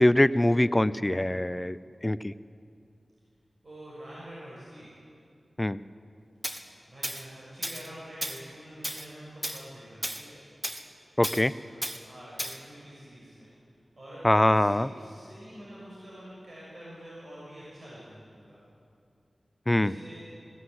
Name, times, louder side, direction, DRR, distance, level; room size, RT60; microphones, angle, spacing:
voice 1, 0.0-1.8 2.0-2.3 5.6-5.8 11.2-11.5 14.2-14.9 19.7-19.9, left 1 dB, 15° left, 15 dB, 0.5 m, -23 dB
voice 2, 3.6-4.9 6.9-10.4 12.0-13.5 14.0-14.2 14.5-18.6 19.7-20.3, right 1 dB, 50° right, -7 dB, 6.3 m, -46 dB
Tools, 6.4-6.6 7.0-7.2 7.6-7.9 8.2-8.4 8.8-9.1 9.4-9.6 10.0-10.2 10.6-10.8 11.2-11.4 11.8-12.0 12.4-12.6, right 1 dB, 20° right, 1.4 m, -34 dB
20.5 x 16.5 x 8.0 m, 2.5 s
wide cardioid pair, 80°, 0 cm